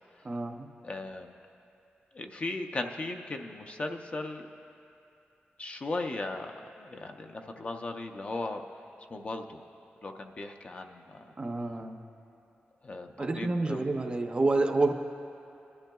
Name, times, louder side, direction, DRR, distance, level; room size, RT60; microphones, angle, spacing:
voice 1, 0.2-0.7 11.4-12.0 13.2-14.9, right 2 dB, 25° right, 5 dB, 0.5 m, -28 dB
voice 2, 0.8-1.3 2.1-4.5 5.6-6.5 6.8-8.6 9.1-9.6 10.0-11.2 12.8-13.9, left 2 dB, 35° left, 4 dB, 0.5 m, -37 dB
21.5 x 12.0 x 2.3 m, 2.7 s
wide cardioid pair, 180°, 4 cm